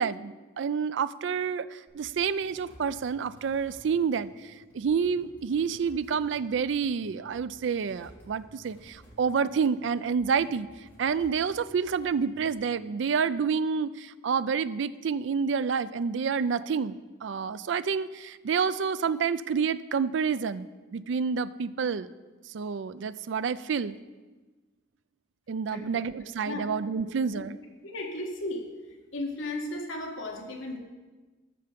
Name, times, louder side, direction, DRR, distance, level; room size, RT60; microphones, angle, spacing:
voice 1, 0.0-10.7 11.0-22.1 22.5-24.0 25.5-27.6, right 6 dB, 65° right, 16 dB, 0.4 m, -29 dB
sound 1, 1.9-12.5, equal, 10° left, 3.1 m, -55 dB
voice 2, 27.8-28.7 29.1-30.8, left 1 dB, 75° left, 1 dB, 1.6 m, -34 dB
13.5 x 5.7 x 5.2 m, 1.2 s
head